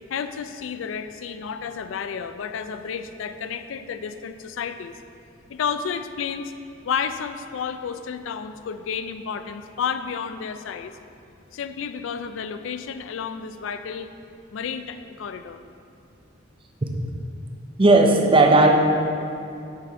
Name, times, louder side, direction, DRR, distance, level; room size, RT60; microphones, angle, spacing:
voice 1, 0.1-4.9 5.5-6.5 6.8-11.0 11.5-14.1 14.5-15.6, left 6 dB, 80° left, 10 dB, 0.4 m, -31 dB
voice 2, 17.8-18.8, right 2 dB, 30° right, 2 dB, 0.6 m, -15 dB
8.7 x 4.1 x 4.5 m, 2.7 s
head